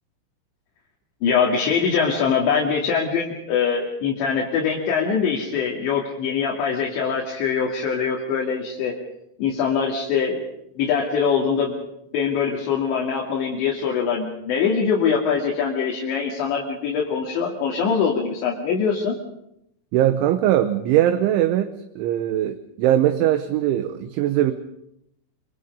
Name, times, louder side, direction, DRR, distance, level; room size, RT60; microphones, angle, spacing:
voice 1, 1.2-9.0 9.4-10.4 10.8-11.8 12.1-19.2, left 6 dB, 65° left, -2 dB, 4.6 m, -23 dB
voice 2, 19.9-24.5, right 12 dB, 80° right, 8 dB, 3.3 m, -20 dB
25.5 x 24.5 x 5.4 m, 0.79 s
omnidirectional pair, 5.6 m